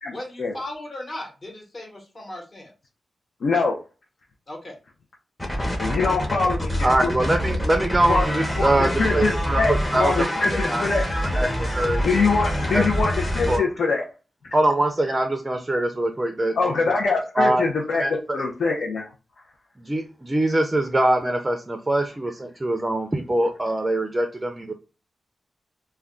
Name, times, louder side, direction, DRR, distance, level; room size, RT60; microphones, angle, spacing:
voice 1, 0.1-2.7 4.5-4.8, left 1 dB, 40° left, 0 dB, 1.0 m, -37 dB
voice 2, 3.4-3.8 5.8-6.9 8.1-8.2 8.6-8.7 9.0-11.0 12.0-14.0 16.6-19.1, left 4 dB, 75° left, -2 dB, 0.5 m, -23 dB
sound 1, 5.4-13.6, equal, 15° left, 0.7 m, -25 dB
voice 3, 6.8-10.3 10.6-10.8 11.2-12.0 12.7-12.8 13.5-13.6 14.5-16.8 17.4-17.6 18.0-18.1 19.8-24.7, right 1 dB, 20° right, 5 dB, 0.4 m, -23 dB
2.3 x 2.2 x 3.6 m, 0.33 s
wide cardioid pair, 115°, 0 cm